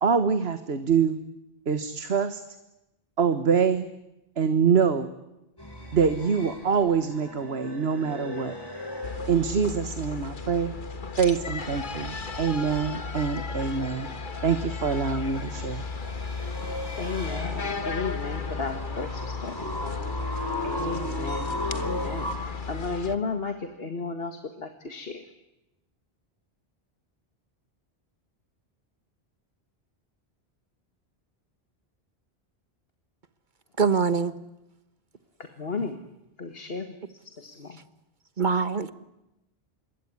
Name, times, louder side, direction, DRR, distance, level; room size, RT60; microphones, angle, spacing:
voice 1, 0.0-1.2 1.7-2.4 3.2-3.9 4.4-5.1 5.9-8.5 9.3-10.7 11.1-14.1 14.4-15.8, right 6 dB, 75° right, 11 dB, 1.6 m, -25 dB
sound 1, 5.6-10.0 10.3-11.4 14.7-22.4, left 1 dB, 20° left, 5.9 m, -37 dB
sound 2, 9.0-23.2, left 4 dB, 50° left, 1.7 m, -34 dB
voice 2, 17.0-20.4 20.6-25.2 35.6-36.0 36.4-36.9 37.4-37.8, left 4 dB, 65° left, 7 dB, 2.1 m, -34 dB
voice 3, 33.8-34.3 38.4-38.9, right 5 dB, 50° right, 15 dB, 1.4 m, -23 dB
26.5 x 22.5 x 9.8 m, 0.94 s
omnidirectional pair, 1.1 m